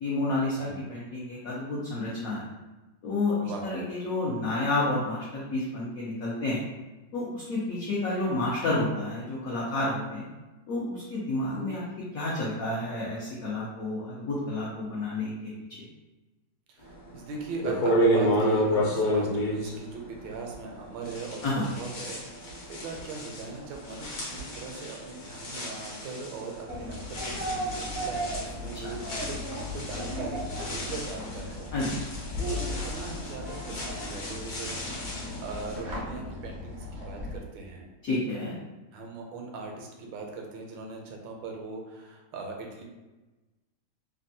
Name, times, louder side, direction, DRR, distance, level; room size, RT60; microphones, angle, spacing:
voice 1, 0.0-2.5 3.0-3.4 3.6-6.6 7.1-10.3 10.7-11.8 12.1-15.5 21.4-21.6 31.7-32.0 38.0-38.6, left 2 dB, 75° left, -6 dB, 0.8 m, -30 dB
voice 2, 3.4-3.8 16.7-22.4 22.7-37.9 38.9-42.8, right 3 dB, 75° right, 1 dB, 1.3 m, -40 dB
sound 1, 17.1-17.2 17.6-20.7 21.0-35.8, equal, 60° left, 1.2 m, -31 dB
sound 2, 26.7-37.4, left 1 dB, 55° right, 0.7 m, -36 dB
3.3 x 2.2 x 2.6 m, 1.1 s
omnidirectional pair, 2.2 m